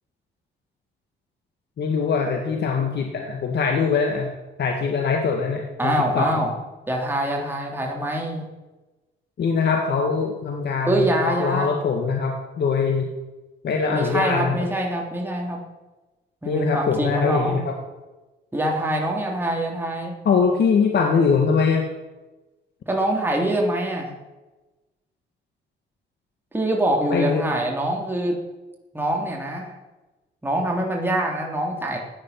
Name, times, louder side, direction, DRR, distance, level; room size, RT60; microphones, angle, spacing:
voice 1, 1.8-4.3 4.6-6.3 9.4-13.1 13.6-14.5 16.5-17.7 20.3-21.9 27.1-27.5, left 5 dB, 60° left, 3 dB, 2.1 m, -22 dB
voice 2, 5.8-6.5 6.9-8.5 10.9-11.7 13.8-15.6 16.4-17.6 18.5-20.2 22.9-24.1 26.5-28.4 28.9-29.7 30.4-32.0, right 1 dB, 10° right, -1 dB, 3.5 m, -24 dB
16.0 x 10.0 x 6.0 m, 1.1 s
cardioid pair, 90°, 20 cm